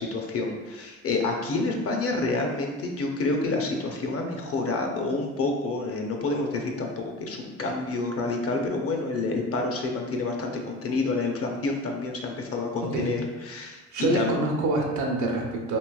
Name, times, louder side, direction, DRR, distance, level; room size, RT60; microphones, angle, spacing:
voice 1, 0.0-14.4, left 3 dB, 50° left, 2 dB, 0.6 m, -28 dB
voice 2, 12.8-13.1 13.9-15.8, right 2 dB, 75° right, 1 dB, 0.7 m, -26 dB
3.1 x 2.8 x 2.3 m, 1.2 s
cardioid pair, 90°, 30 cm